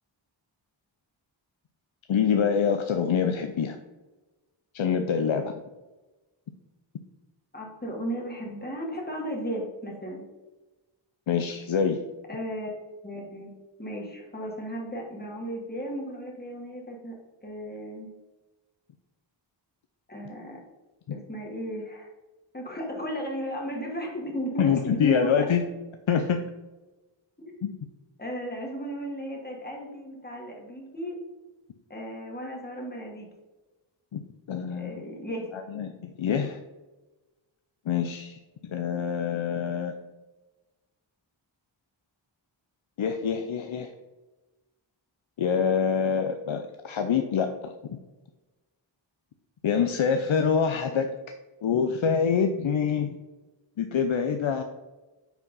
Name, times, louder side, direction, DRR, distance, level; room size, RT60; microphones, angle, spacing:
voice 1, 2.1-3.8 4.7-5.5 11.3-12.0 21.1-21.2 24.6-25.6 26.1-26.4 27.6-27.7 34.1-34.2 34.5-35.0 35.5-36.6 37.9-39.9 43.0-43.9 45.4-47.7 49.6-51.1 51.6-53.2 53.8-54.6, left 7 dB, 75° left, 6 dB, 0.6 m, -25 dB
voice 2, 7.5-10.2 12.3-13.5 13.8-17.2 17.4-18.1 20.1-20.6 21.1-22.1 22.5-25.5 27.4-27.6 28.2-31.2 31.9-33.3 34.7-35.5, equal, 20° left, -1 dB, 1.9 m, -35 dB
5.7 x 4.7 x 5.3 m, 1.1 s
cardioid pair, 40°, 47 cm